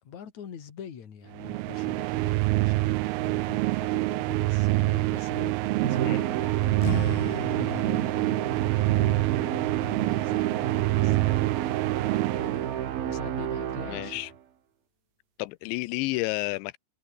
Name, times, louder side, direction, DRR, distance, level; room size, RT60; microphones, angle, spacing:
voice 1, 0.0-11.5 12.4-14.3, left 7 dB, 45° left, 3.8 m, -44 dB
sound 1, 1.3-13.2, right 20 dB, 85° right, 2.2 m, -26 dB
Musical instrument, 5.8-14.4, right 10 dB, 60° right, 3.8 m, -32 dB
sound 2, 6.8-11.9, left 16 dB, 75° left, 2.5 m, -40 dB
voice 2, 13.9-14.3 15.4-16.8, left 21 dB, 90° left, 3.0 m, -31 dB
omnidirectional pair, 5.0 m